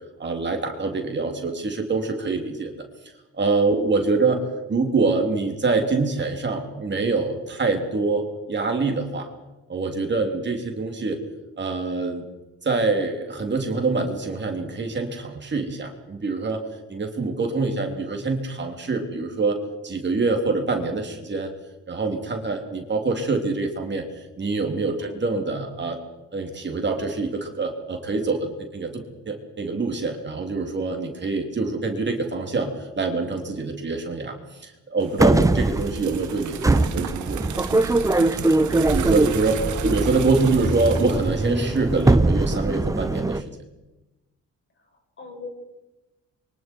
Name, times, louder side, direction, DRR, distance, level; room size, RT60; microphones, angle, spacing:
voice 1, 0.2-2.8 3.3-4.4 4.7-9.3 9.7-11.2 11.6-12.2 12.6-16.6 16.9-19.6 19.8-21.5 21.9-24.1 24.4-26.0 26.3-34.4 34.6-37.8 38.9-43.4, right 3 dB, 35° right, 2 dB, 3.6 m, -25 dB
sound 1, 35.0-42.1, right 10 dB, 75° right, 1.6 m, -35 dB
sound 2, 35.2-43.4, right 2 dB, 10° right, 0.8 m, -22 dB
voice 2, 39.6-39.9 44.8-45.5, left 2 dB, 40° left, 2 dB, 6.8 m, -43 dB
27.5 x 24.0 x 4.7 m, 1.1 s
cardioid pair, 90°, 30 cm